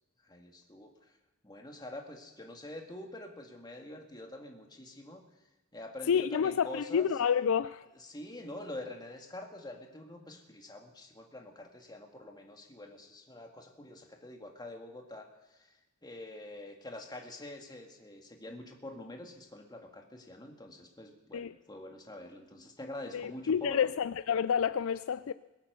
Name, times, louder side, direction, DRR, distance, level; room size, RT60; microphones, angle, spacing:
voice 1, 0.2-1.1 1.4-5.2 5.7-7.1 8.0-23.9, left 1 dB, 20° left, 2.0 m, -46 dB
voice 2, 6.1-7.8 21.3-21.5 23.1-25.3, left 7 dB, 70° left, 0.4 m, -29 dB
21.5 x 8.7 x 6.8 m
head